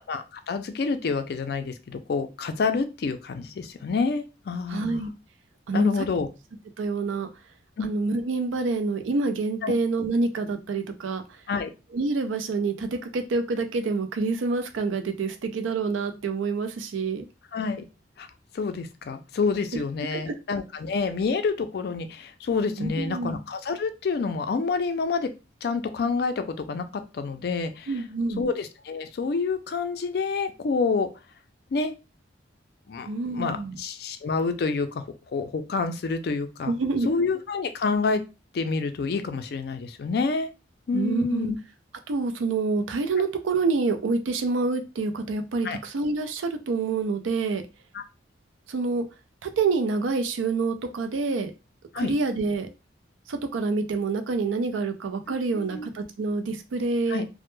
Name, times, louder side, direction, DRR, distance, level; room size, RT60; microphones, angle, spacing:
voice 1, 0.0-5.0 5.7-6.3 7.8-7.9 9.6-9.7 11.5-11.7 17.5-17.8 18.2-18.3 18.5-25.3 25.6-27.9 28.4-31.1 31.7-31.9 32.9-36.7 37.0-38.2 38.5-40.5 40.9-41.6 45.6-45.8 47.9-48.0 51.9-52.1 55.3-55.9 57.1-57.3, left 4 dB, 55° left, 8 dB, 0.3 m, -28 dB
voice 2, 4.7-5.1 5.7-5.9 6.8-7.3 7.8-11.2 11.9-17.3 19.7-19.8 20.1-20.3 22.8-23.4 27.9-28.4 33.1-33.8 36.7-37.1 40.9-41.5 42.1-47.6 48.7-49.1 49.4-51.5 52.0-52.7 53.3-57.2, right 3 dB, 90° right, 7 dB, 0.4 m, -27 dB
2.1 x 2.0 x 3.0 m, 0.29 s
head